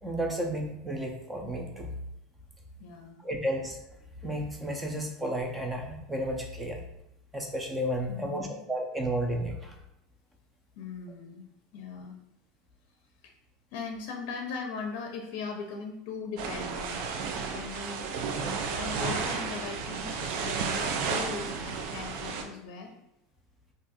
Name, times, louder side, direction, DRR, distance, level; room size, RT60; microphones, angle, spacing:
voice 1, 0.0-1.9 3.2-3.8 4.2-6.8 7.3-9.8, right 1 dB, 10° right, 2 dB, 0.6 m, -32 dB
voice 2, 2.8-3.2 8.1-8.6 10.8-11.5 11.7-12.2 13.2-13.3 13.7-17.0 17.5-18.1 18.7-22.9, left 5 dB, 65° left, 2 dB, 0.5 m, -39 dB
sound 1, 16.4-22.4, right 5 dB, 65° right, 0.4 m, -32 dB
2.5 x 2.5 x 4.0 m, 0.85 s
supercardioid pair, 135°, 0 cm